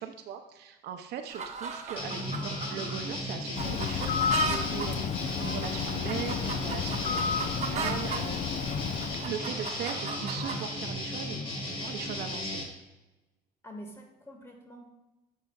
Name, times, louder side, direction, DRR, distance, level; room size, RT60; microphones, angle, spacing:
voice 1, 0.0-8.6 9.2-11.4 11.7-12.6, right 8 dB, 75° right, 5 dB, 0.5 m, -39 dB
sound 1, 1.3-8.2 8.7-10.7, right 5 dB, 40° right, 0.8 m, -37 dB
sound 2, 2.0-12.6, left 1 dB, 30° left, 1.6 m, -36 dB
Bird, 3.5-9.4, left 8 dB, 45° left, 0.4 m, -32 dB
voice 2, 13.6-14.9, equal, 15° left, 2 dB, 1.4 m, -46 dB
9.7 x 5.6 x 2.3 m, 1.1 s
cardioid pair, 110°, 17 cm